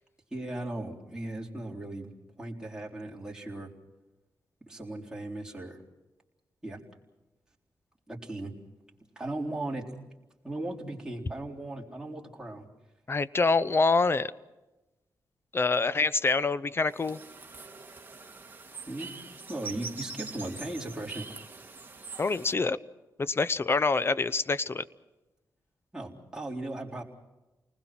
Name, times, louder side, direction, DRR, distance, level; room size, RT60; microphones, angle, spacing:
voice 1, 0.3-2.1 2.4-3.7 4.7-5.8 6.6-6.8 8.1-8.5 9.2-10.0 10.4-12.7 18.9-19.1 19.5-21.3 25.9-27.0, right 2 dB, 10° right, -3 dB, 3.9 m, -37 dB
voice 2, 13.1-14.3 15.5-17.2 22.2-22.8 23.2-24.8, left 4 dB, 35° left, 17 dB, 0.7 m, -26 dB
sound 1, 16.9-22.5, right 4 dB, 25° right, 2.0 m, -44 dB
29.5 x 20.0 x 6.0 m, 1.1 s
cardioid pair, 90°, 7 cm